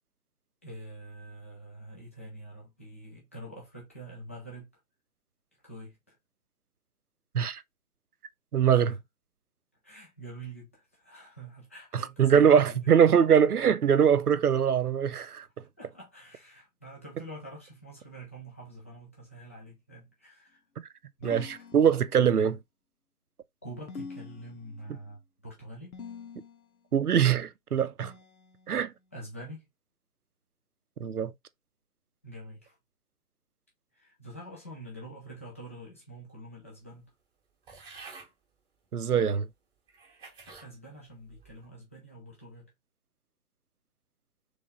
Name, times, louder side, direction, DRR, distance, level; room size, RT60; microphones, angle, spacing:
voice 1, 0.6-4.7 5.6-6.2 8.7-9.0 9.8-12.8 15.8-20.6 21.2-21.5 23.6-26.0 29.1-29.7 32.2-32.8 33.9-37.1 40.5-42.7, right 1 dB, 10° left, 0.4 m, -46 dB
voice 2, 8.5-8.9 11.9-15.4 21.2-21.5 21.7-22.6 26.9-28.1 28.7-28.9 31.0-31.3 38.9-39.5, right 8 dB, 80° right, 0.7 m, -22 dB
sound 1, 21.2-22.4 23.9-25.0 25.9-26.8 28.0-29.0, left 5 dB, 70° left, 1.0 m, -46 dB
sound 2, 37.7-38.3 39.1-39.2 39.9-40.7 41.3-41.7, right 4 dB, 10° right, 1.0 m, -49 dB
3.3 x 3.3 x 3.7 m
figure-of-eight pair, 140°, 44 cm